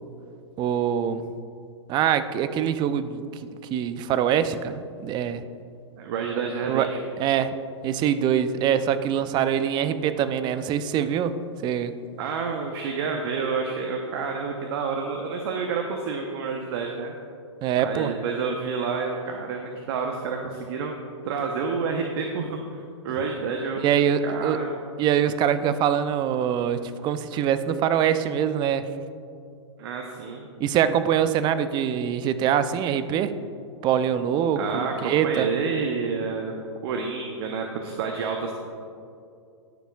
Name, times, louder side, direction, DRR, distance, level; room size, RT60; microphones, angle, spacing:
voice 1, 0.6-1.2 1.9-3.2 3.7-5.4 6.7-6.9 7.2-7.6 7.8-11.4 11.6-11.9 17.6-18.1 23.1-23.2 23.8-24.6 25.0-28.8 30.6-33.3 33.8-35.5, right 9 dB, 30° right, 12 dB, 0.5 m, -24 dB
voice 2, 6.0-7.0 12.2-17.1 17.8-21.0 21.2-22.8 23.0-23.9 24.2-24.8 29.8-30.5 34.6-36.5 36.8-38.5, right 5 dB, 55° right, 2 dB, 1.0 m, -29 dB
20.5 x 7.0 x 2.4 m, 2.4 s
hypercardioid pair, 115°, 16 cm